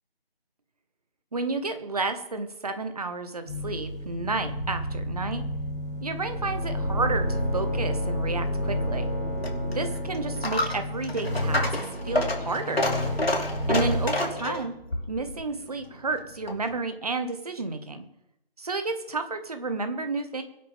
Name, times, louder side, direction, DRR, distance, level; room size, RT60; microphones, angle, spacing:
voice 1, 1.3-5.4 6.0-9.1 9.7-11.8 12.0-12.8 13.7-14.8 15.1-18.0 18.6-20.4, right 3 dB, 40° right, 8 dB, 1.5 m, -31 dB
sound 1, 3.4-14.5, equal, 5° right, 0.9 m, -30 dB
Coin (dropping), 9.2-16.7, left 1 dB, 75° left, 3.0 m, -30 dB
23.0 x 9.0 x 3.6 m, 0.82 s
figure-of-eight pair, 165°, 31 cm